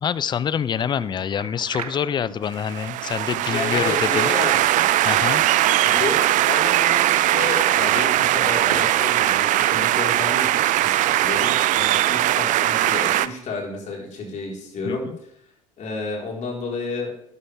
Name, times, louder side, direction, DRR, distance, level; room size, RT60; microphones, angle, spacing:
voice 1, 0.0-4.3 5.0-5.4 14.9-15.0, left 8 dB, 25° left, 19 dB, 0.5 m, -26 dB
sound 1, 0.7-12.1, right 7 dB, 80° right, 0.9 m, -37 dB
sound 2, 2.6-13.3, right 14 dB, 45° right, 0.5 m, -20 dB
voice 2, 3.3-4.9 5.8-15.0 15.8-17.1, left 3 dB, 40° left, -1 dB, 4.2 m, -31 dB
12.0 x 11.0 x 3.5 m, 0.73 s
figure-of-eight pair, 65°, 19 cm